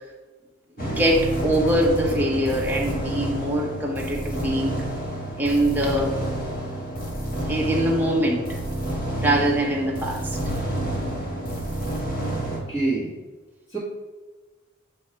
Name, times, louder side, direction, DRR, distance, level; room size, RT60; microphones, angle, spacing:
sound 1, 0.8-12.6, right 1 dB, 45° left, 1.4 m, -29 dB
voice 1, 0.8-4.8 5.4-6.2 7.5-8.5 9.2-10.4, right 1 dB, 10° right, -2 dB, 0.9 m, -23 dB
voice 2, 12.5-13.1 13.7-13.8, right 2 dB, 20° left, -10 dB, 1.5 m, -26 dB
7.9 x 2.8 x 4.4 m, 1.3 s
head